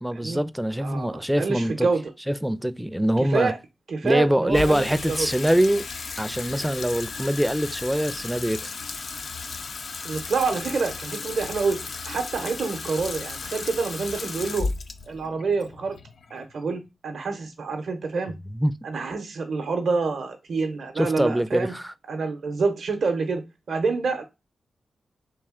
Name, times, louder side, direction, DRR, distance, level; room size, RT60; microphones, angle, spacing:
voice 1, 0.0-1.9 2.3-3.5 4.0-5.9 6.2-8.7 18.5-18.8 21.0-21.9, equal, 5° right, 0.3 m, -24 dB
voice 2, 0.8-2.0 3.3-3.6 3.9-5.3 10.0-14.7 15.1-16.0 16.3-18.3 18.8-21.7 22.1-23.4 23.7-24.2, right 4 dB, 70° right, 0.6 m, -27 dB
Water tap faucet / Sink (filling or washing), 4.5-16.9, left 4 dB, 65° left, 0.4 m, -35 dB
3.2 x 2.8 x 3.5 m
supercardioid pair, 45°, 0 cm